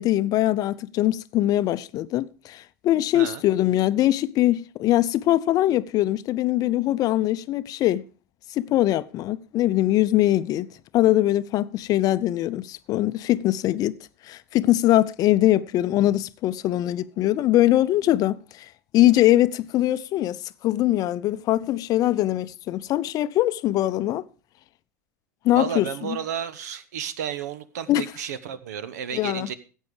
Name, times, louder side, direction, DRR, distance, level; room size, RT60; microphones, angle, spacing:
voice 1, 0.0-8.0 8.5-14.0 14.3-18.7 18.9-24.2 25.4-26.2 27.9-28.0 29.1-29.5, left 14 dB, 40° left, 0.6 m, -22 dB
voice 2, 25.5-29.5, right 8 dB, 70° right, 1.0 m, -32 dB
14.5 x 8.3 x 4.8 m
hypercardioid pair, 80°, 9 cm